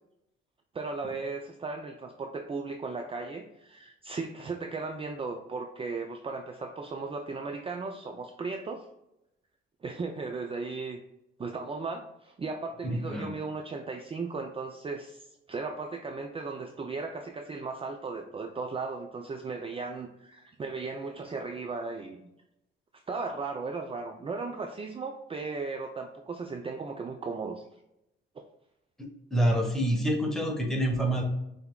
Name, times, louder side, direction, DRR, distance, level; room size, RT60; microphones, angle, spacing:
voice 1, 0.7-8.9 9.8-11.0 11.4-22.3 23.1-27.6, right 4 dB, 30° right, 4 dB, 0.5 m, -36 dB
voice 2, 12.8-13.3 29.0-31.2, right 1 dB, ahead, 1 dB, 1.3 m, -27 dB
5.6 x 3.4 x 2.3 m, 0.85 s
cardioid pair, 90°, 20 cm